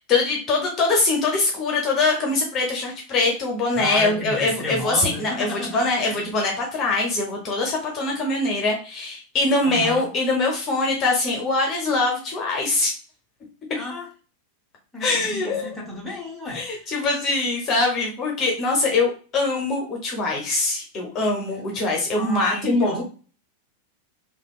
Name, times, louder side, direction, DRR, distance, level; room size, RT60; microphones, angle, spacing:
voice 1, 0.1-12.9 15.0-15.7 16.5-23.0, left 3 dB, 30° left, 0 dB, 0.8 m, -23 dB
voice 2, 3.7-6.2 9.6-10.1 13.7-14.1 14.9-16.9 22.1-23.0, left 1 dB, 5° left, -4 dB, 1.0 m, -33 dB
3.3 x 2.3 x 2.3 m, 0.37 s
figure-of-eight pair, 90°, 0 cm